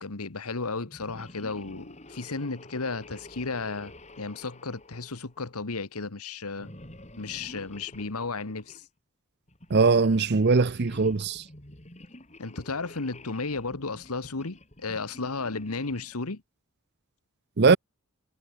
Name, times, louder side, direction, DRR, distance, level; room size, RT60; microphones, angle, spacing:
voice 1, 0.0-3.9 4.2-6.7 7.2-8.8 12.4-16.4, left 3 dB, 85° left, 1.5 m, -34 dB
sound 1, 0.8-5.7 6.5-8.9 9.5-16.3, left 1 dB, 30° left, 4.8 m, -49 dB
voice 2, 9.7-11.4 17.6-17.8, right 4 dB, 50° right, 0.7 m, -21 dB
head